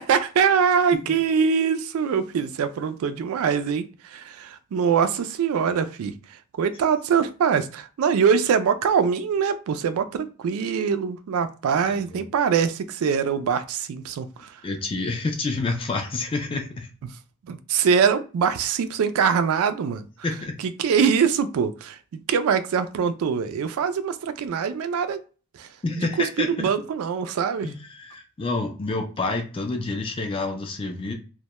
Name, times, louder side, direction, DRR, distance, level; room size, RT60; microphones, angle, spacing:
voice 1, 0.0-6.1 6.6-14.6 17.5-20.1 20.6-25.2 25.6-25.7 25.9-27.7, right 6 dB, 75° right, 0.3 m, -23 dB
voice 2, 11.9-12.2 14.6-16.9 20.2-20.6 25.8-26.7 27.6-31.1, left 3 dB, 25° left, 0.3 m, -28 dB
2.1 x 2.0 x 2.9 m
head